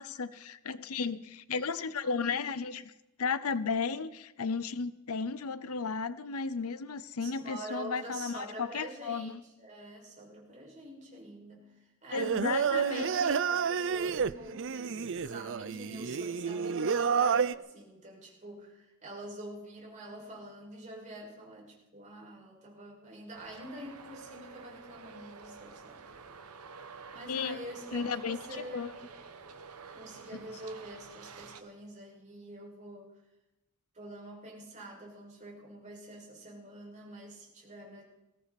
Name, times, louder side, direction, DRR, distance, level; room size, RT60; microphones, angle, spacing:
voice 1, 0.0-2.9 3.2-9.4 12.1-13.1 27.3-27.6 27.9-28.4 28.7-28.9 30.3-30.4, left 5 dB, 80° left, 15 dB, 0.7 m, -34 dB
voice 2, 7.2-26.1 27.1-29.0 29.9-33.1 33.9-38.0, right 1 dB, 35° right, -2 dB, 5.7 m, -46 dB
Singing, 12.1-17.5, right 6 dB, 60° right, 0.5 m, -30 dB
Traffic noise roadway noise, 23.4-31.6, right 5 dB, 85° right, 1.3 m, -49 dB
20.0 x 17.0 x 4.2 m, 0.94 s
head